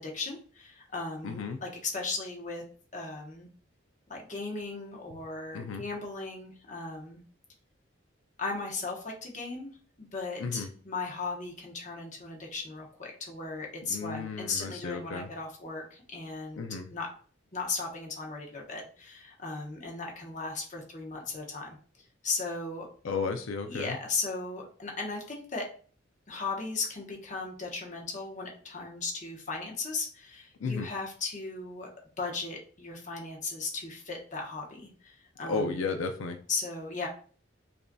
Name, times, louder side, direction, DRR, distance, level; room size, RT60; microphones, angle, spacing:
voice 1, 0.0-2.6 2.9-3.5 4.1-7.2 8.4-9.7 10.0-16.6 16.9-17.1 17.5-21.8 22.2-22.9 23.7-25.7 26.3-31.9 32.2-35.9 36.5-37.1, left 3 dB, 40° left, 0 dB, 0.9 m, -36 dB
voice 2, 1.2-1.6 5.5-5.8 10.4-10.7 13.9-15.3 16.6-16.9 23.0-24.0 30.6-30.9 35.4-36.4, left 4 dB, 90° left, 6 dB, 0.4 m, -33 dB
5.3 x 2.6 x 2.2 m, 0.43 s
head